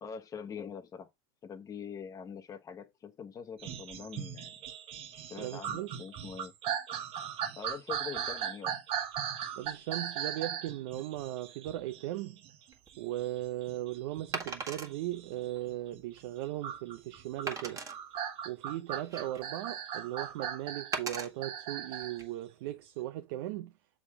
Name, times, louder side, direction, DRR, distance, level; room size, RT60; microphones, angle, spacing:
voice 1, 0.0-1.1 1.4-4.5 5.3-6.5 7.6-8.7, left 6 dB, 25° left, 1.1 m, -43 dB
sound 1, 3.6-16.0 16.6-22.2 22.7-22.8, right 8 dB, 45° right, 1.3 m, -38 dB
voice 2, 5.4-5.9 9.6-12.4 13.0-17.9 18.4-23.7, right 14 dB, 70° right, 0.7 m, -38 dB
Wood, 12.7-12.9 14.3-14.9 15.6-15.7 16.2-16.3 17.5-18.0 18.7-19.5 20.9-21.3 22.0-22.2, right 4 dB, 25° right, 1.7 m, -38 dB
7.0 x 3.7 x 4.8 m
supercardioid pair, 115°, 13 cm